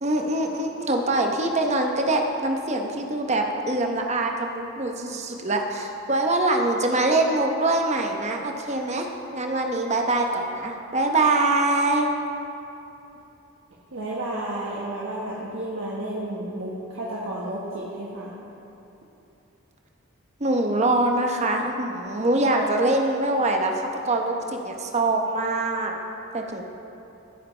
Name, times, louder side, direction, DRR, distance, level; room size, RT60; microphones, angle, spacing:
voice 1, 0.0-9.1 9.3-12.1 20.4-23.7 24.0-26.0 26.3-26.6, right 2 dB, 35° right, 2 dB, 0.9 m, -24 dB
voice 2, 13.9-18.4, right 1 dB, 90° right, -6 dB, 1.4 m, -32 dB
15.0 x 8.8 x 3.3 m, 2.8 s
head